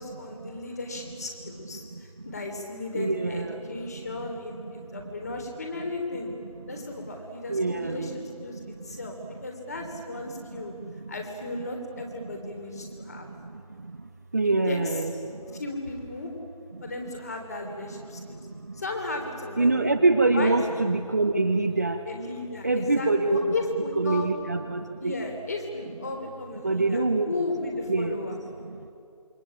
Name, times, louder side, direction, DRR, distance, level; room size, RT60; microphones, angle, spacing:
voice 1, 0.0-6.3 6.7-9.2 9.4-10.7 11.1-13.3 14.4-14.9 15.6-16.3 16.8-18.5 18.7-19.9 20.3-20.6 22.1-24.3 25.0-28.4, left 2 dB, 25° left, 3 dB, 3.6 m, -35 dB
voice 2, 1.7-2.3 2.9-4.3 4.6-5.1 6.4-7.2 7.5-8.2 8.5-9.1 9.8-9.9 10.2-11.1 12.2-15.6 16.7-16.9 17.9-18.8 19.6-22.0 22.6-23.6 24.0-25.1 26.6-27.3 27.9-28.2 28.4-28.9, right 2 dB, 25° right, 4 dB, 1.0 m, -27 dB
28.0 x 24.0 x 8.8 m, 2.4 s
figure-of-eight pair, 170°, 19 cm